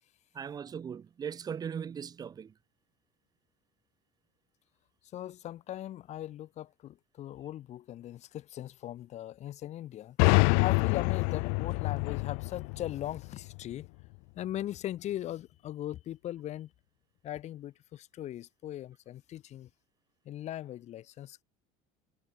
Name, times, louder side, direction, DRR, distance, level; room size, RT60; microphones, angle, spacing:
voice 1, 0.3-2.5, right 7 dB, 20° right, 1.0 m, -38 dB
voice 2, 5.1-10.2 10.6-13.9 14.4-16.7 17.2-19.7 20.2-21.4, left 12 dB, 40° left, 6.6 m, -39 dB
sound 1, 10.2-13.8, left 40 dB or more, 70° left, 0.4 m, -27 dB
cardioid pair, 150°, 17 cm